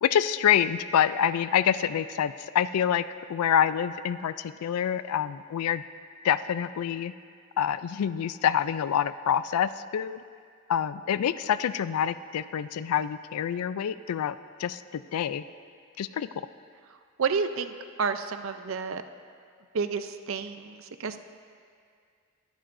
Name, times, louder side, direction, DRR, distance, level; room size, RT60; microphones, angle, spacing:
voice 1, 0.0-3.0 3.3-5.8 6.2-7.1 7.6-10.2 10.7-15.4 16.0-16.3, left 9 dB, 90° left, 14 dB, 0.3 m, -26 dB
voice 2, 17.2-17.7 18.0-19.0 19.7-21.2, right 5 dB, 65° right, 10 dB, 0.5 m, -30 dB
20.0 x 11.5 x 2.6 m, 2.2 s
head